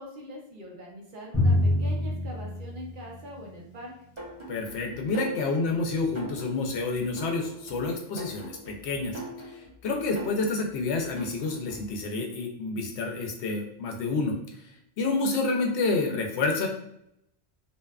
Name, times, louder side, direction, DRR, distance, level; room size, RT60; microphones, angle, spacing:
voice 1, 0.0-3.9, equal, 55° right, -1 dB, 0.7 m, -43 dB
Drum, 1.3-3.7, left 1 dB, 20° left, 0.5 m, -26 dB
sound 1, 4.2-12.0, right 1 dB, 30° right, 0.8 m, -43 dB
voice 2, 4.5-9.2 9.5-14.3 15.0-16.7, left 3 dB, 85° left, 1 dB, 0.9 m, -29 dB
2.6 x 2.2 x 2.3 m, 0.75 s
omnidirectional pair, 1.1 m